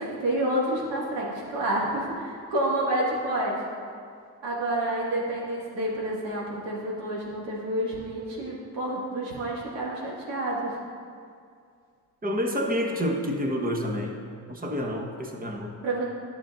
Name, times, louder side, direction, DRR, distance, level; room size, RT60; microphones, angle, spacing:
voice 1, 0.0-3.6 4.4-10.8 15.8-16.1, right 1 dB, 80° right, -4 dB, 2.0 m, -29 dB
voice 2, 12.2-14.2 14.5-15.7, equal, 20° right, 2 dB, 1.1 m, -28 dB
11.0 x 6.9 x 2.5 m, 2.2 s
supercardioid pair, 70°, 42 cm